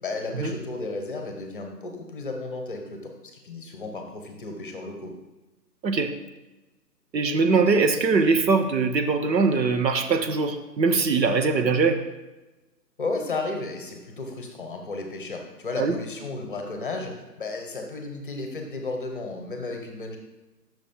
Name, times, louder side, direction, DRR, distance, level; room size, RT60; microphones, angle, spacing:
voice 1, 0.0-5.1 13.0-20.2, left 3 dB, 30° left, 3 dB, 0.8 m, -33 dB
voice 2, 5.8-6.1 7.1-12.0 15.8-15.9, right 4 dB, 90° right, 8 dB, 0.9 m, -22 dB
6.1 x 5.1 x 4.3 m, 1.1 s
hypercardioid pair, 155°, 49 cm